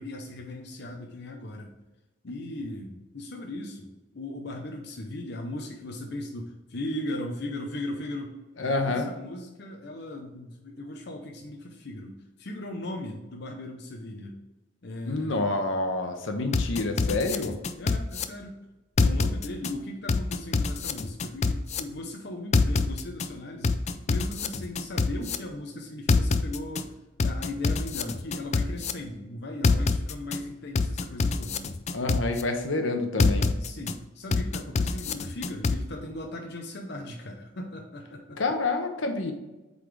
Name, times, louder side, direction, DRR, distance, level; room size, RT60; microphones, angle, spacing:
voice 1, 0.0-1.8 2.2-14.4 14.8-15.6 17.8-18.6 19.0-23.8 24.1-26.9 27.2-31.7 33.5-38.4, left 1 dB, 60° left, 1 dB, 0.7 m, -38 dB
voice 2, 8.6-9.1 15.1-17.6 31.9-33.5 38.4-39.3, left 2 dB, 80° left, 5 dB, 1.0 m, -28 dB
sound 1, 16.5-18.2 19.0-19.7 20.1-21.8 22.5-23.3 23.6-25.4 26.1-26.8 27.2-28.9 29.6-30.4 30.8-32.4 33.2-33.9 34.3-35.8, left 4 dB, 35° left, 0.4 m, -25 dB
8.2 x 3.9 x 3.3 m, 1.1 s
head